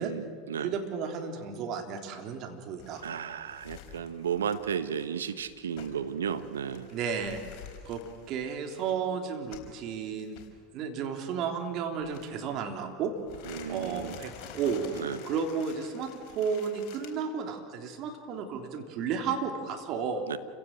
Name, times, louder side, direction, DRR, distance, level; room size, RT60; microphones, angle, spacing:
voice 1, 0.0-0.7 3.0-6.9 13.5-14.2 14.9-15.2 20.3-20.4, right 7 dB, 80° right, 12 dB, 1.1 m, -34 dB
voice 2, 0.6-3.0 6.9-7.4 7.9-8.0 8.3-10.4 10.7-13.1 13.4-14.8 15.2-20.2, right 6 dB, 50° right, 4 dB, 3.4 m, -33 dB
sound 1, 2.8-9.8 10.2-10.5 12.0-12.7 13.2-17.1, left 8 dB, 50° left, 4.6 m, -49 dB
28.5 x 17.0 x 7.7 m, 2.2 s
hypercardioid pair, 85°, 0 cm